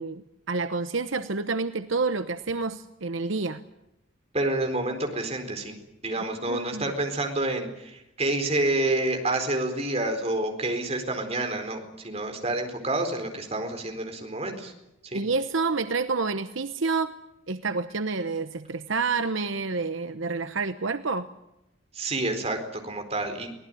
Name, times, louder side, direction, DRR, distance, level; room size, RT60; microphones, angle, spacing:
voice 1, 0.0-3.6 6.2-6.8 15.1-17.1 17.5-21.3, right 4 dB, 70° right, 11 dB, 1.0 m, -29 dB
voice 2, 4.3-5.8 6.0-14.7 15.0-15.3 21.9-23.5, right 2 dB, 30° right, 5 dB, 4.3 m, -28 dB
24.0 x 18.5 x 9.2 m, 0.88 s
head